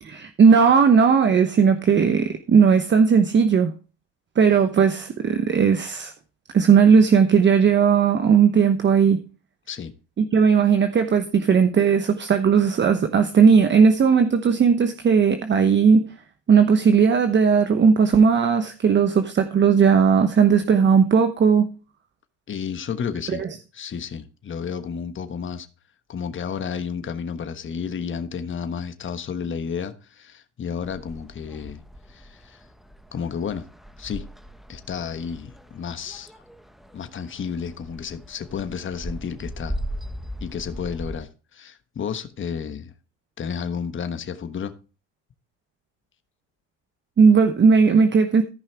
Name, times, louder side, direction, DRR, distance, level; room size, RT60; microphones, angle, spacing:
voice 1, 0.0-3.7 4.4-6.1 6.5-9.2 10.2-16.1 16.5-21.7 23.3-23.5 47.2-48.4, right 6 dB, 30° right, 1.0 m, -17 dB
voice 2, 22.5-23.4 23.7-25.7 26.1-31.8 32.1-32.6 33.1-33.6 34.0-34.2 34.7-36.3 36.9-39.8 40.4-42.9 43.4-44.7, left 7 dB, 35° left, 1.3 m, -31 dB
sound 1, 30.8-41.2, equal, ahead, 1.1 m, -38 dB
14.0 x 5.6 x 4.5 m
supercardioid pair, 85°, 35 cm